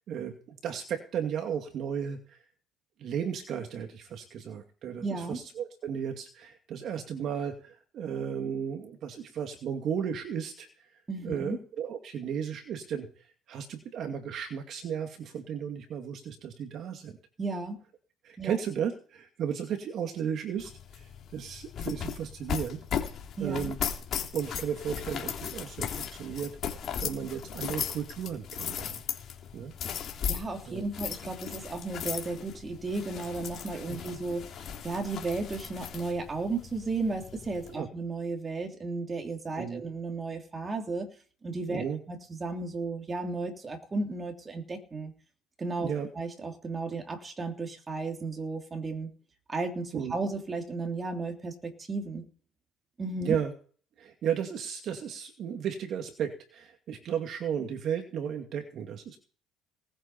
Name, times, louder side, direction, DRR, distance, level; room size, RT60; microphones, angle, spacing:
voice 1, 0.1-2.4 3.0-10.7 11.2-13.1 13.5-17.2 18.2-22.8 23.4-23.8 24.3-29.0 29.5-29.7 30.7-30.8 37.6-37.9 39.6-39.8 41.7-42.0 45.8-46.1 49.9-50.1 53.2-53.5 54.0-59.2, right 8 dB, 50° right, 5 dB, 2.4 m, -34 dB
voice 2, 5.0-5.4 11.1-11.6 17.4-17.8 18.4-18.5 23.4-23.7 30.3-41.1 41.4-45.1 45.6-49.1 49.5-52.2 53.0-53.4, right 3 dB, 20° right, 3 dB, 3.2 m, -34 dB
sound 1, 20.6-37.8, left 8 dB, 45° left, 3.3 m, -37 dB
19.0 x 8.7 x 4.3 m, 0.41 s
cardioid pair, 135°, 0 cm